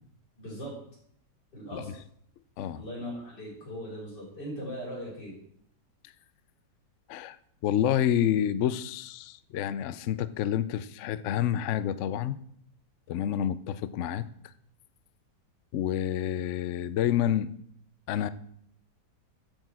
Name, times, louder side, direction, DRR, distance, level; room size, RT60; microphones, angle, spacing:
voice 1, 0.4-0.7 1.5-1.9 2.7-5.3, equal, 70° left, -4 dB, 4.6 m, -39 dB
voice 2, 7.6-12.4 13.1-14.3 15.7-17.5 18.1-18.3, left 10 dB, 85° left, 15 dB, 0.6 m, -28 dB
8.8 x 6.4 x 7.5 m, 0.68 s
omnidirectional pair, 1.9 m